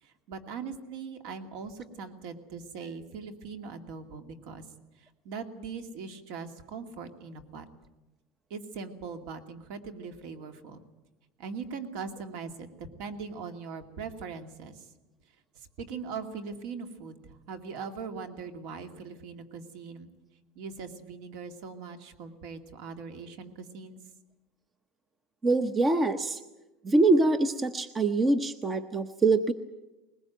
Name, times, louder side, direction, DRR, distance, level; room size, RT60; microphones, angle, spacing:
voice 1, 0.0-4.6 5.0-7.7 8.5-10.8 11.4-14.9 15.5-20.1 20.6-24.0, right 5 dB, 60° right, 7 dB, 2.4 m, -41 dB
voice 2, 25.4-26.4 26.8-29.5, right 2 dB, 15° right, 10 dB, 0.8 m, -24 dB
21.0 x 20.5 x 9.1 m, 1.0 s
cardioid pair, 170°, 0 cm